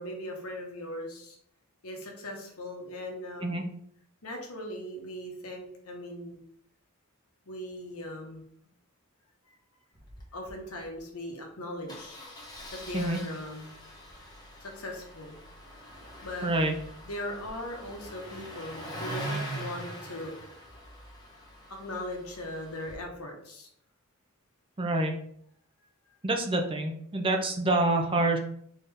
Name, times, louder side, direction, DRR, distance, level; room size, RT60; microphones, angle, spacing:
voice 1, 0.0-1.4 1.8-3.6 4.2-6.4 7.5-8.4 10.3-12.2 12.7-13.7 14.6-15.4 16.2-16.5 17.0-20.3 21.7-23.7, left 1 dB, 80° left, 2 dB, 1.1 m, -39 dB
Engine starting, 9.9-10.2 10.5-10.6 10.8-11.0 11.9-22.9, right 1 dB, 20° left, 1.1 m, -42 dB
voice 2, 16.4-16.7 24.8-25.1 26.2-28.4, right 2 dB, 25° right, 3 dB, 0.5 m, -27 dB
4.1 x 3.5 x 3.3 m, 0.67 s
head